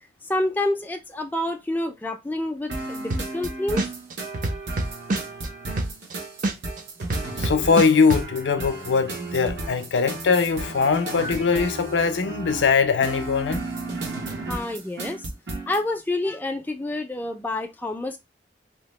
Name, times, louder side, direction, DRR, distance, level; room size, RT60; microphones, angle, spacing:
voice 1, 0.3-3.9 14.5-15.3 15.7-18.2, left 1 dB, 10° left, 0.3 m, -28 dB
sound 1, 2.7-15.8, right 2 dB, 75° right, 0.9 m, -34 dB
sound 2, 3.1-3.5 3.8-6.1 6.4-8.2, right 2 dB, 45° right, 0.5 m, -25 dB
voice 2, 7.4-13.6, left 5 dB, 85° left, 0.5 m, -21 dB
2.8 x 2.0 x 3.0 m
head